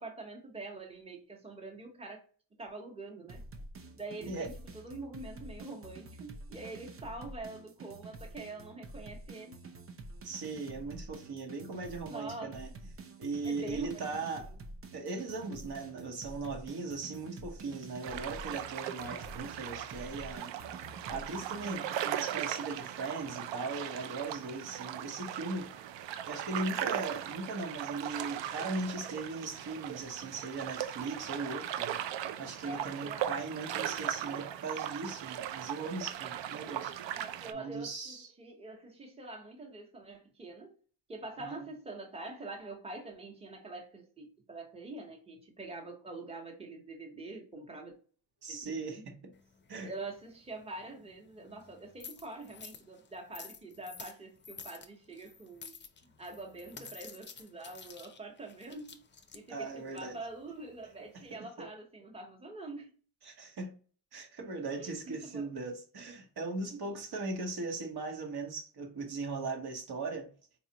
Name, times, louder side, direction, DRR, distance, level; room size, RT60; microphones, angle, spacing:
voice 1, 0.0-2.2 2.6-3.4 3.9-9.6 12.1-12.5 13.4-14.1 14.4-14.5 32.6-33.3 37.2-40.8 41.1-47.9 48.5-49.0 49.8-55.8 56.0-59.0 59.3-62.9 64.8-65.5 66.7-67.0, right 2 dB, 15° right, 1.0 m, -45 dB
sound 1, 3.3-21.7, right 2 dB, 30° right, 0.7 m, -48 dB
voice 2, 10.2-12.7 13.2-14.5 14.9-20.5 21.1-25.7 26.3-32.0 32.4-36.9 37.5-38.3 41.4-41.6 48.4-49.2 49.7-49.9 59.5-60.2 61.3-61.4 63.2-63.7 64.1-70.3, right 3 dB, 60° right, 1.2 m, -39 dB
sound 2, 18.0-37.5, right 11 dB, 75° right, 0.5 m, -38 dB
sound 3, 49.3-61.4, left 6 dB, 25° left, 0.5 m, -52 dB
4.3 x 2.4 x 2.8 m
cardioid pair, 85°, 44 cm